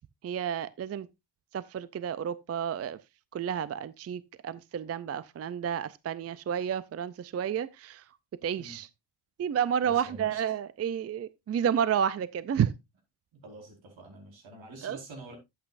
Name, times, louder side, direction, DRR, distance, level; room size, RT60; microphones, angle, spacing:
voice 1, 0.2-1.1 1.5-3.0 3.3-8.2 8.4-8.9 9.4-12.7 14.8-15.0, right 8 dB, 35° right, 0.4 m, -31 dB
voice 2, 9.8-10.4 13.4-15.3, right 2 dB, 75° right, 4.8 m, -46 dB
12.0 x 8.3 x 2.5 m
cardioid pair, 125°, 46 cm